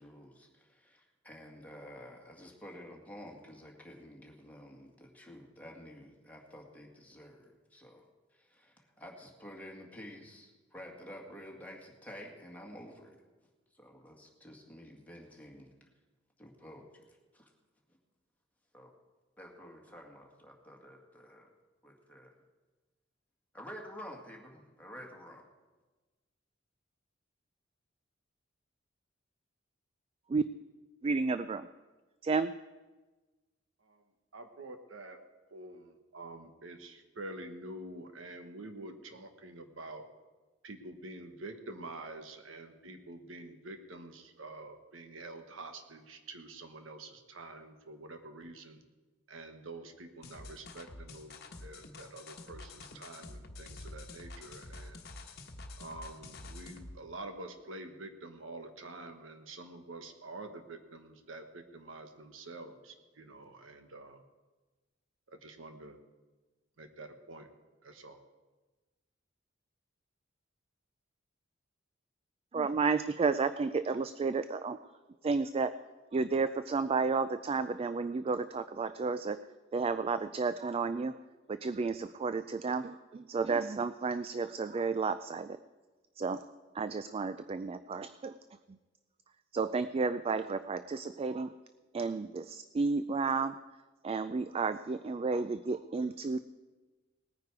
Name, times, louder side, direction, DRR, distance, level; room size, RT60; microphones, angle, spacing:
voice 1, 0.0-8.1 8.3-13.2 13.7-15.7 16.4-17.0 17.3-17.5 18.7-18.9 19.4-21.5 21.8-22.3 23.5-25.4, equal, 10° left, -1 dB, 2.1 m, -50 dB
voice 2, 31.0-31.7 32.2-32.5 72.5-74.8 75.2-75.8 76.1-79.4 79.7-81.2 81.5-85.6 86.2-86.4 86.7-88.4 88.7-88.8 89.5-91.5 91.9-93.6 94.0-96.4, right 4 dB, 30° right, 13 dB, 0.3 m, -32 dB
voice 3, 34.3-35.2 35.5-40.1 40.6-48.8 49.3-55.1 55.8-64.2 65.3-66.0 66.8-67.5 67.8-68.2, right 2 dB, 85° right, 7 dB, 1.3 m, -47 dB
sound 1, 50.2-56.9, left 2 dB, 55° left, 1.2 m, -48 dB
19.0 x 9.6 x 4.7 m, 1.2 s
head